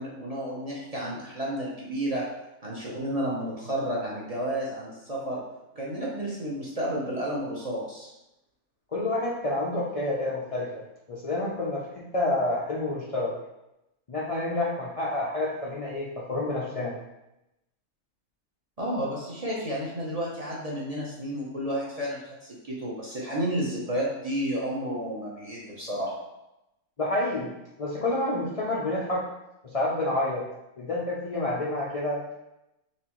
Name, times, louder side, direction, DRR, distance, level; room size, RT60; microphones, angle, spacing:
voice 1, 0.0-2.2 2.6-5.4 5.7-8.1 18.8-26.2, right 1 dB, 35° right, -5 dB, 0.7 m, -31 dB
voice 2, 8.9-10.7 11.1-13.3 14.1-16.9 27.0-27.5 27.8-29.2 29.6-30.4 30.8-32.4, left 2 dB, 55° left, -5 dB, 0.4 m, -28 dB
4.2 x 3.3 x 3.0 m, 0.90 s
omnidirectional pair, 1.5 m